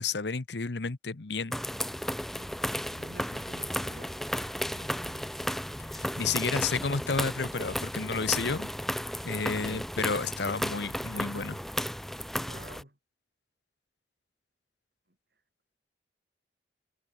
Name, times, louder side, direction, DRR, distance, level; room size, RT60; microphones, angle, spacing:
voice 1, 0.0-1.6 5.9-8.7 9.2-11.6, left 5 dB, 75° left, 1.0 m, -31 dB
sound 1, 1.5-12.8, equal, ahead, 0.5 m, -34 dB
voice 2, 2.9-4.2 4.7-5.4 6.1-6.7 12.4-13.0 15.1-15.2, right 1 dB, 60° right, 4.8 m, -50 dB
head